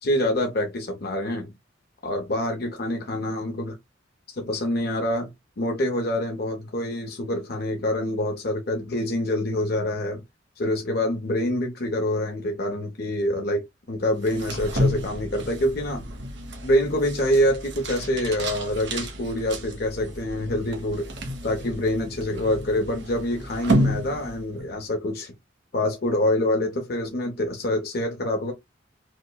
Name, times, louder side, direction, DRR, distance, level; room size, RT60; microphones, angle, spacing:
voice 1, 0.0-1.5 2.0-3.7 4.4-5.3 5.6-10.2 10.6-16.0 16.6-21.1 21.4-25.3 25.7-28.5, left 1 dB, 55° left, 0.8 m, -26 dB
sound 1, 14.2-24.7, equal, 65° right, 1.1 m, -30 dB
4.9 x 2.2 x 2.3 m
head